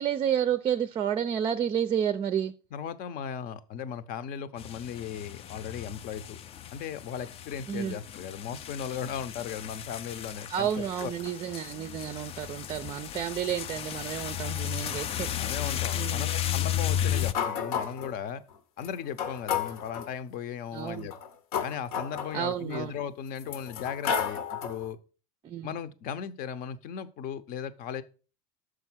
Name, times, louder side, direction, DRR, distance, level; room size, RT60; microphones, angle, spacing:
voice 1, 0.0-2.5 7.7-8.0 10.5-15.3 15.9-16.3 17.1-17.2 20.7-21.1 22.3-22.9 25.4-25.7, right 9 dB, 30° right, 0.5 m, -30 dB
voice 2, 2.7-6.4 6.7-11.1 15.3-18.4 18.8-21.1 21.6-25.0 25.6-28.0, left 8 dB, 55° left, 0.8 m, -37 dB
sound 1, 4.6-17.3, left 10 dB, 35° left, 0.4 m, -34 dB
sound 2, 17.3-18.2 18.8-18.9 19.2-20.1 20.9-22.8 23.4-24.9, left 7 dB, 75° left, 1.1 m, -32 dB
6.5 x 4.9 x 6.2 m
supercardioid pair, 125°, 18 cm